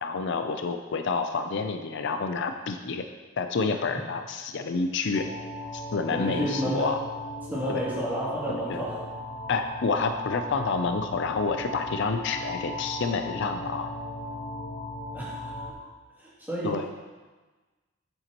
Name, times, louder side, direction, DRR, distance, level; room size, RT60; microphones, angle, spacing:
voice 1, 0.0-3.0 3.4-5.3 5.7-7.0 7.7-7.8 8.5-8.8 9.5-13.9 16.6-16.9, left 4 dB, 60° left, 7 dB, 0.5 m, -29 dB
sound 1, 5.1-15.7, left 1 dB, 45° left, 1.0 m, -37 dB
voice 2, 6.1-6.9 7.5-9.1 15.1-15.4 16.2-16.8, equal, 10° right, -8 dB, 2.4 m, -31 dB
9.2 x 8.0 x 3.0 m, 1.3 s
head